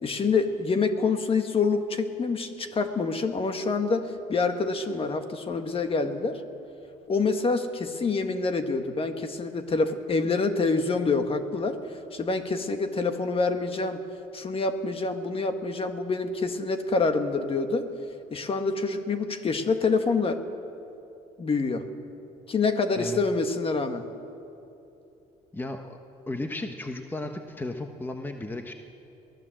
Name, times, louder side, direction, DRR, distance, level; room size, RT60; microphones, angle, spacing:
voice 1, 0.0-6.4 7.1-11.8 12.1-14.0 14.3-17.9 18.3-20.4 21.4-21.8 22.5-24.0, left 4 dB, 35° left, 7 dB, 1.6 m, -26 dB
voice 2, 25.5-26.0 26.3-28.7, left 2 dB, 10° left, 5 dB, 1.2 m, -34 dB
22.5 x 17.0 x 7.7 m, 2.8 s
cardioid pair, 110°, 17 cm